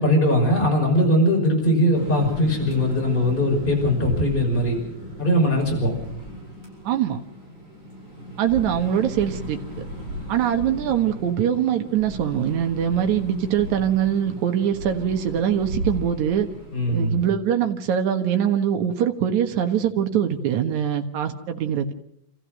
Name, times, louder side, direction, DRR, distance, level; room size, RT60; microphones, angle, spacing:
voice 1, 0.0-4.8 5.2-6.0 16.7-17.2, equal, 15° left, 0 dB, 5.8 m, -20 dB
sound 1, 1.9-17.3, equal, 40° right, 8.5 m, -36 dB
voice 2, 6.8-7.2 8.4-9.6 10.3-16.5 16.9-21.9, right 9 dB, 75° right, 5 dB, 2.8 m, -23 dB
29.0 x 14.5 x 6.5 m, 0.77 s
omnidirectional pair, 3.3 m